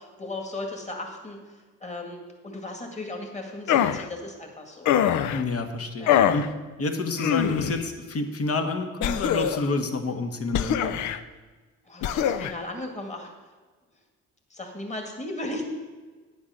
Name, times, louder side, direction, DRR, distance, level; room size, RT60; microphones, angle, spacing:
voice 1, 0.0-5.0 6.0-6.1 11.9-13.3 14.5-15.6, left 2 dB, 25° left, 2 dB, 2.1 m, -36 dB
sound 1, 3.7-4.1 4.9-5.4 6.1-6.5 7.2-7.8 9.0-9.7 10.5-11.2 12.0-12.5, left 10 dB, 75° left, 0.6 m, -23 dB
voice 2, 5.3-6.5 6.8-11.0, left 3 dB, 50° left, 5 dB, 1.5 m, -28 dB
10.0 x 7.1 x 6.5 m, 1.4 s
cardioid pair, 90°, 30 cm